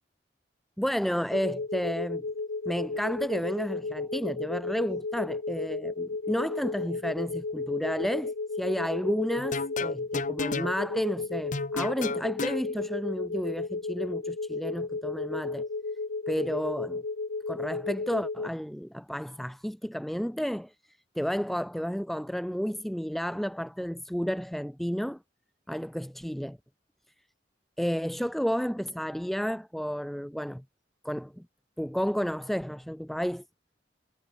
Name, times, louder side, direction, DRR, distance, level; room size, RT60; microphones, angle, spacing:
voice 1, 0.8-2.2 2.7-15.7 16.3-17.0 17.5-20.7 21.2-25.2 25.7-26.6 27.8-30.6 31.0-31.4 31.8-33.4, equal, ahead, 0.3 m, -31 dB
sound 1, 1.3-18.5, left 3 dB, 70° left, 0.8 m, -34 dB
sound 2, 9.4-10.7 11.5-12.6, left 3 dB, 45° left, 1.1 m, -33 dB
head